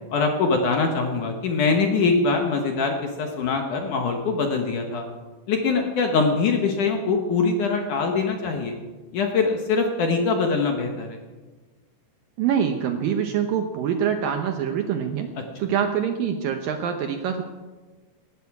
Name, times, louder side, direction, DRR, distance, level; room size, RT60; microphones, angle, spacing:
voice 1, 0.1-5.0 5.5-8.7 9.1-11.2, left 4 dB, 65° left, 3 dB, 2.2 m, -23 dB
voice 2, 12.4-15.3 15.6-17.4, right 8 dB, 75° right, 6 dB, 2.2 m, -25 dB
19.0 x 15.0 x 4.8 m, 1.3 s
omnidirectional pair, 4.9 m